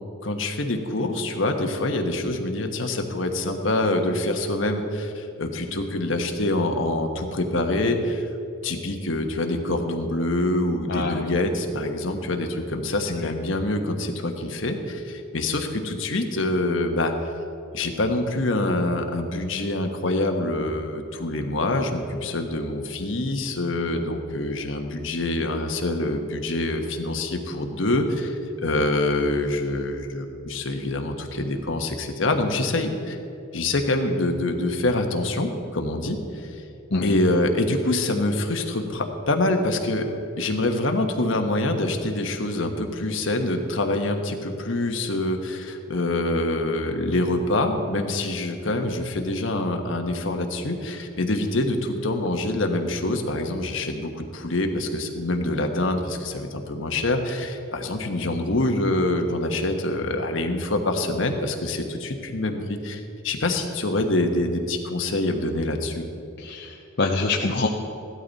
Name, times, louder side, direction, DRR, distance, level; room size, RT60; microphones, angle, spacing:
voice 1, 0.2-8.3 8.6-17.1 17.7-33.2 33.5-36.5 37.0-40.1 40.4-66.1, left 2 dB, 75° left, 5 dB, 1.3 m, -25 dB
voice 2, 10.9-11.4 13.1-13.4 36.9-37.2 66.4-67.7, left 3 dB, 60° left, 0 dB, 0.8 m, -26 dB
16.0 x 12.5 x 4.1 m, 2.8 s
head